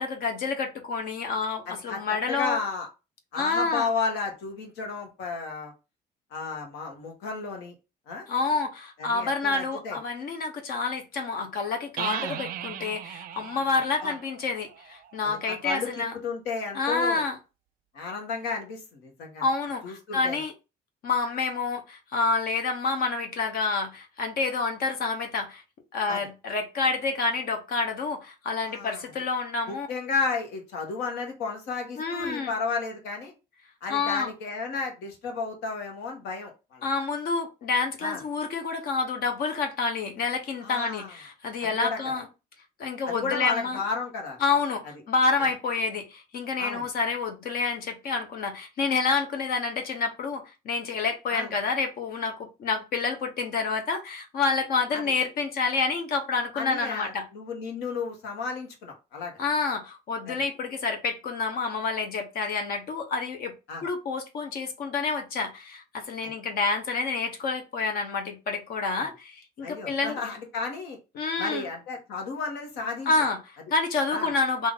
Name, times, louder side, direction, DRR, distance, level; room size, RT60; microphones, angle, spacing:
voice 1, 0.0-2.6 3.4-3.9 8.3-16.1 16.7-17.4 19.4-20.5 21.0-25.6 25.9-29.9 32.0-32.5 33.9-34.3 36.8-42.3 42.8-43.8 44.4-57.3 59.4-63.5 63.8-70.2 71.2-71.7 73.1-74.7, left 4 dB, 60° left, 0.8 m, -28 dB
voice 2, 1.7-2.9 3.3-5.7 6.3-7.7 8.1-8.3 9.0-10.0 12.1-12.4 14.0-14.1 15.2-17.2 17.9-19.4 19.8-20.4 26.1-26.3 28.7-29.0 29.7-33.3 33.8-36.9 38.0-38.2 40.6-41.1 41.8-42.0 43.1-44.4 46.6-46.9 51.3-51.5 54.9-55.0 56.5-59.3 60.3-60.4 63.7-63.8 66.2-66.3 69.0-69.1 69.6-71.0 71.4-73.1 74.1-74.3, left 4 dB, 90° left, 1.2 m, -33 dB
sound 1, 12.0-15.6, right 11 dB, 60° right, 0.4 m, -38 dB
3.6 x 2.5 x 3.6 m
cardioid pair, 110°, 17 cm